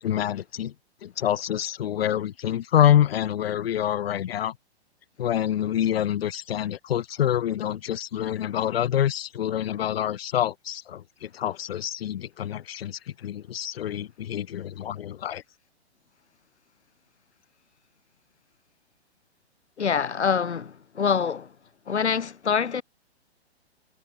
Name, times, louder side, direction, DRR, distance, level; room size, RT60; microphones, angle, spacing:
voice 1, 0.0-0.7 1.0-4.5 5.2-15.4, left 10 dB, 60° left, 1.0 m, -26 dB
voice 2, 19.8-21.5 21.9-22.8, left 6 dB, 85° left, 1.0 m, -25 dB
hypercardioid pair, 120°, 33 cm